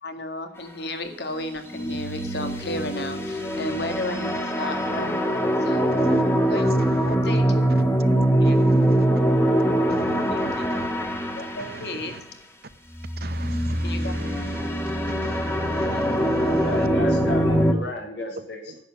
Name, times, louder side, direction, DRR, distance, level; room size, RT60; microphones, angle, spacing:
voice 1, 0.0-5.2 5.6-5.9 6.4-7.6 8.2-9.0 10.0-10.7 11.3-12.1 13.8-14.2, left 1 dB, 65° left, 2.1 m, -34 dB
sound 1, 1.7-12.0 12.9-17.7, right 1 dB, 15° left, 1.7 m, -23 dB
voice 2, 9.9-10.9 11.6-12.0 13.2-14.7 15.1-16.8, right 3 dB, 60° right, 0.9 m, -39 dB
voice 3, 16.5-18.8, left 1 dB, 85° left, 4.0 m, -33 dB
10.5 x 8.1 x 8.0 m
head